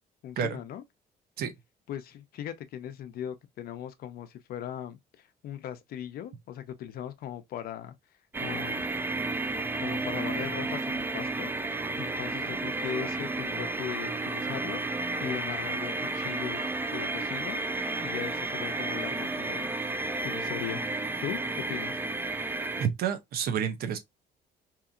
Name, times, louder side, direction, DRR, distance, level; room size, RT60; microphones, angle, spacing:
voice 1, 0.2-0.8 1.9-7.9 8.4-8.8 9.8-11.5 12.0-14.8 15.2-17.6 18.0-19.7 20.2-20.8 21.2-22.0, left 10 dB, 60° left, 0.6 m, -39 dB
sound 1, 8.3-22.9, right 2 dB, 10° right, 0.3 m, -32 dB
voice 2, 22.8-24.0, right 8 dB, 65° right, 0.7 m, -29 dB
2.8 x 2.7 x 2.4 m
cardioid pair, 110°, 17 cm